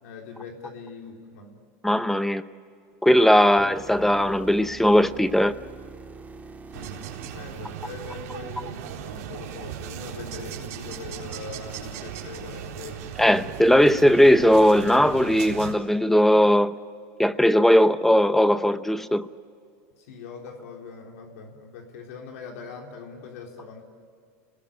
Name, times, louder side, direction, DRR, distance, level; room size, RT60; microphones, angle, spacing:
voice 1, 0.0-1.6 6.7-13.1 20.0-23.8, left 5 dB, 80° left, 1 dB, 3.7 m, -41 dB
voice 2, 1.8-2.4 3.0-5.5 13.2-16.8 17.2-19.3, equal, 5° left, 13 dB, 0.8 m, -18 dB
sound 1, 3.6-8.6 12.6-12.7, right 4 dB, 20° right, 2.4 m, -45 dB
sound 2, 6.7-15.7, right 9 dB, 85° right, 4.1 m, -37 dB
29.5 x 20.0 x 8.7 m, 2.3 s
supercardioid pair, 125°, 8 cm